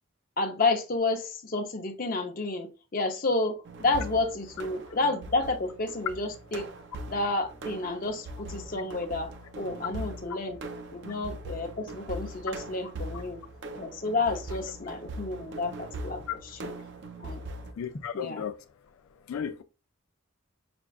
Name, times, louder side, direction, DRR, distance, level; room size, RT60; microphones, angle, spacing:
voice 1, 0.4-6.7 7.1-10.6 10.9-13.4 13.7-16.2 16.6-16.7 17.2-17.4 18.1-18.4, left 3 dB, 45° left, 0.6 m, -30 dB
sound 1, 3.7-17.7, right 1 dB, 60° right, 0.5 m, -41 dB
voice 2, 17.7-18.6 18.9-19.6, left 8 dB, 90° left, 0.3 m, -35 dB
6.0 x 2.3 x 2.3 m
head